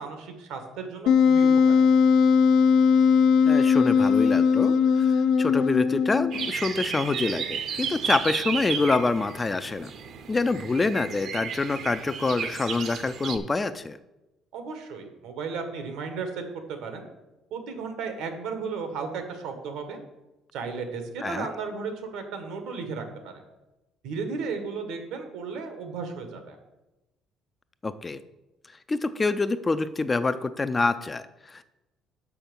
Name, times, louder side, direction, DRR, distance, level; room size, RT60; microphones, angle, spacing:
voice 1, 0.0-1.8 14.5-16.4 16.7-17.1 17.5-20.0 20.5-23.4 24.0-26.6, right 5 dB, 80° right, 6 dB, 1.5 m, -34 dB
Wind instrument woodwind instrument, 1.1-6.5, left 6 dB, 85° left, 0.6 m, -19 dB
voice 2, 3.5-9.9 10.3-14.0 21.2-21.5 27.8-28.2 28.9-31.6, left 3 dB, 15° left, 12 dB, 0.3 m, -26 dB
sound 1, 6.3-13.4, right 7 dB, 50° right, 0.7 m, -33 dB
6.1 x 5.8 x 7.0 m, 1.0 s
cardioid pair, 150°, 0 cm